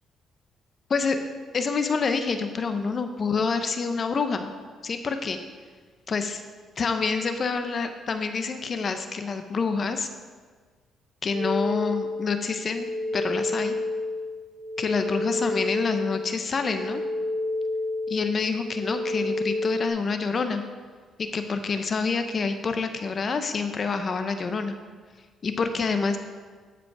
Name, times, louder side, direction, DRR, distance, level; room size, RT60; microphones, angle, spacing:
voice 1, 1.5-4.5 4.8-5.4 6.1-6.4 6.8-10.1 11.2-12.9 13.1-13.8 14.8-17.0 18.1-20.6 21.2-24.7 25.4-26.2, left 4 dB, 45° left, 8 dB, 0.8 m, -27 dB
sound 1, 11.3-19.9, left 2 dB, 85° left, 1.5 m, -30 dB
13.5 x 5.1 x 4.7 m, 1.5 s
cardioid pair, 90°, 0 cm